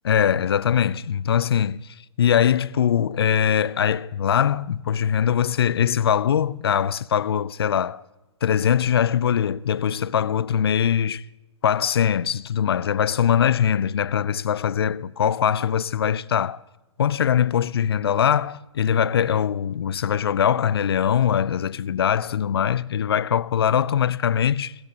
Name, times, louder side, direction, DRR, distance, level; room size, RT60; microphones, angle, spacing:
voice 1, 0.0-8.0 8.4-11.2 11.6-16.6 17.0-24.7, left 8 dB, 50° left, 0.4 m, -22 dB
18.5 x 16.5 x 2.7 m
figure-of-eight pair, 125°, 17 cm